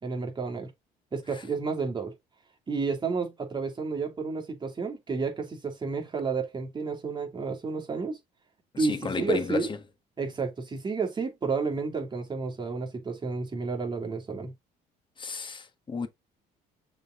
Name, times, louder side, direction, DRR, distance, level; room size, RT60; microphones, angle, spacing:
voice 1, 0.0-0.7 1.1-2.1 2.7-8.2 8.8-9.7 10.2-14.5, right 4 dB, 25° right, 2.8 m, -31 dB
voice 2, 8.7-9.8 15.2-16.1, left 5 dB, 30° left, 1.4 m, -32 dB
6.7 x 3.9 x 3.9 m
cardioid pair, 110°, 17 cm